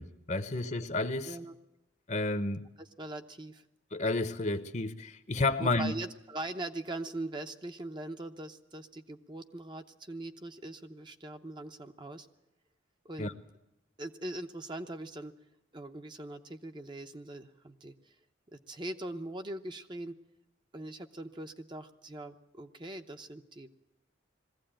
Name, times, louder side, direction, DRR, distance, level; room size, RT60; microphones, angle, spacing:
voice 1, 0.0-1.3 2.1-2.6 3.9-5.9 13.2-13.3, left 2 dB, 35° left, 11 dB, 0.9 m, -31 dB
voice 2, 2.8-3.6 5.6-12.3 13.0-13.4 14.0-15.3 15.7-18.2 18.5-20.2 20.7-23.7, right 1 dB, 25° right, 7 dB, 0.8 m, -41 dB
20.5 x 15.5 x 8.8 m, 0.91 s
head